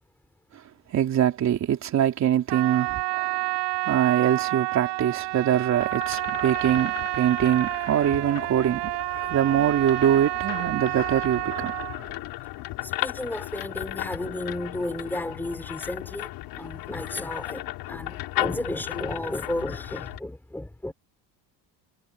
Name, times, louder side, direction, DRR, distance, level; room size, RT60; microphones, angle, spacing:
voice 1, 0.9-3.5 3.8-8.9 9.3-12.1, right 10 dB, 40° right, 3.8 m, -23 dB
Trumpet, 2.5-12.0, right 21 dB, 85° right, 6.3 m, -29 dB
sound 1, 5.2-20.2, left 18 dB, 80° left, 5.2 m, -36 dB
voice 2, 12.8-20.9, left 1 dB, 5° left, 4.0 m, -33 dB
cardioid pair, 165°, 40 cm